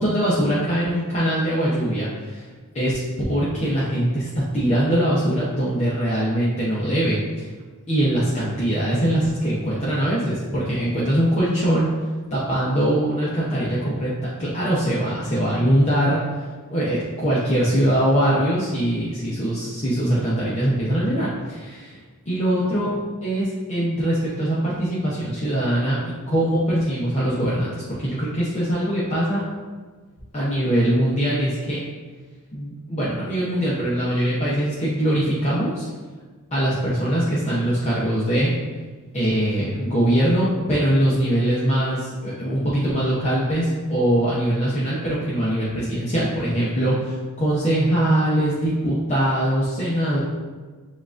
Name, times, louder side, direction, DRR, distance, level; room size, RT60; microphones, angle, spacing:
voice 1, 0.0-2.5 2.7-2.9 3.3-7.5 7.9-11.9 12.3-16.4 16.7-22.0 22.3-22.9 23.2-29.4 30.3-31.8 32.5-35.9 36.5-38.5 39.1-50.2, right 1 dB, 30° left, -8 dB, 0.7 m, -22 dB
7.1 x 2.4 x 2.5 m, 1.4 s
head